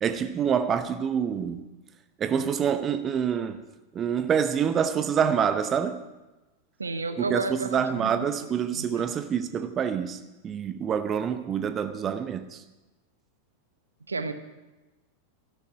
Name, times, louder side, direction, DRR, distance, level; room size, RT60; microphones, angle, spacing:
voice 1, 0.0-1.6 2.2-3.6 3.9-6.0 7.2-12.6, right 7 dB, 25° right, 0.8 m, -26 dB
voice 2, 6.8-8.3 8.7-9.0 14.1-14.3, right 3 dB, 75° right, 0.8 m, -32 dB
12.5 x 11.5 x 5.9 m
figure-of-eight pair, 90°, 0 cm